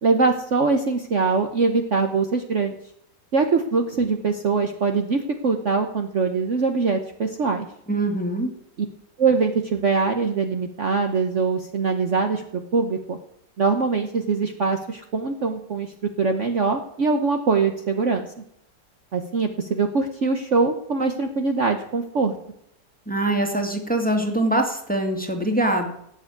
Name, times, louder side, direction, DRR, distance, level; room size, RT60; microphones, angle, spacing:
voice 1, 0.0-2.7 3.3-7.7 9.2-13.2 13.6-18.3 19.1-22.3, right 4 dB, 45° right, 4 dB, 1.3 m, -23 dB
voice 2, 7.9-8.5 23.1-25.9, right 1 dB, 5° left, 3 dB, 2.1 m, -23 dB
17.0 x 7.3 x 9.3 m, 0.73 s
omnidirectional pair, 1.9 m